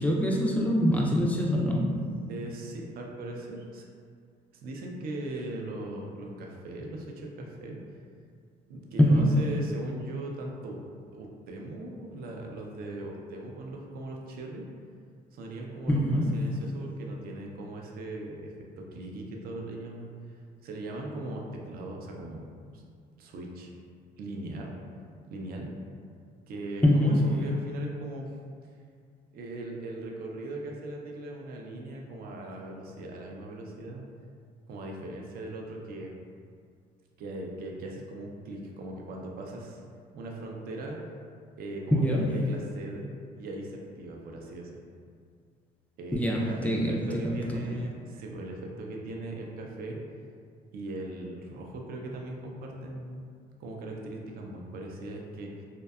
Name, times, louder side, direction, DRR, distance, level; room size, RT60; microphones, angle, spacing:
voice 1, 0.0-1.9 9.0-9.4 15.9-16.5 26.8-27.3 41.9-42.4 46.1-47.6, equal, 10° left, -2 dB, 0.3 m, -24 dB
voice 2, 2.3-3.9 4.6-7.8 8.7-10.8 11.1-14.7 15.3-20.1 20.6-22.4 22.7-22.8 23.2-23.7 24.2-24.8 25.3-25.7 26.5-28.3 29.3-34.1 34.7-36.1 37.2-39.8 40.1-41.0 41.6-43.1 43.4-44.8 46.0-50.0 50.7-53.3 53.6-55.7, right 2 dB, 60° right, 0 dB, 0.4 m, -39 dB
2.6 x 2.1 x 2.3 m, 2.2 s
cardioid pair, 110°, 17 cm